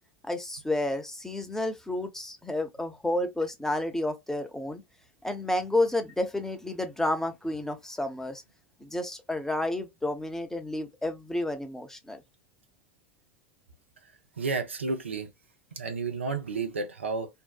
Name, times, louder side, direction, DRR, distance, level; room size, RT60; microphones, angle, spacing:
voice 1, 0.2-4.8 5.2-8.4 8.8-12.2, left 1 dB, 5° left, 0.6 m, -30 dB
voice 2, 14.4-15.3 15.8-17.3, right 4 dB, 85° right, 0.5 m, -31 dB
2.6 x 2.0 x 2.3 m
figure-of-eight pair, 75°, 6 cm